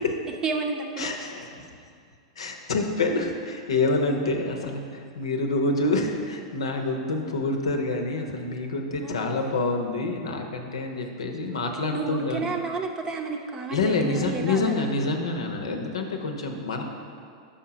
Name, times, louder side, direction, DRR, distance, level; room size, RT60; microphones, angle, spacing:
voice 1, 0.4-1.1 9.0-9.2 11.9-14.9, right 3 dB, 20° right, 3 dB, 0.7 m, -31 dB
voice 2, 1.0-1.7 2.4-12.5 13.7-16.8, left 2 dB, 80° left, 3 dB, 0.8 m, -27 dB
5.8 x 5.2 x 5.0 m, 2.2 s
hypercardioid pair, 105°, 3 cm